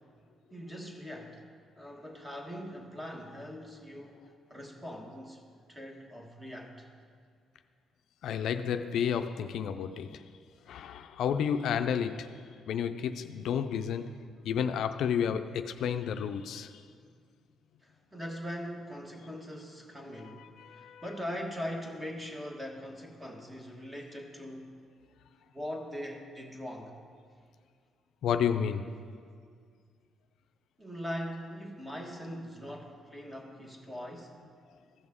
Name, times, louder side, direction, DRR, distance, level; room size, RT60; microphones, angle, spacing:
voice 1, 0.5-1.4 1.8-4.2 4.5-5.4 5.7-6.9 17.8-24.7 25.5-26.9 30.8-34.4, equal, 10° right, 1 dB, 1.5 m, -41 dB
voice 2, 8.2-10.2 10.7-14.1 14.4-16.8 20.2-21.0 28.2-29.0, left 8 dB, 75° left, 9 dB, 0.3 m, -31 dB
15.0 x 6.1 x 3.6 m, 2.1 s
cardioid pair, 90°, 0 cm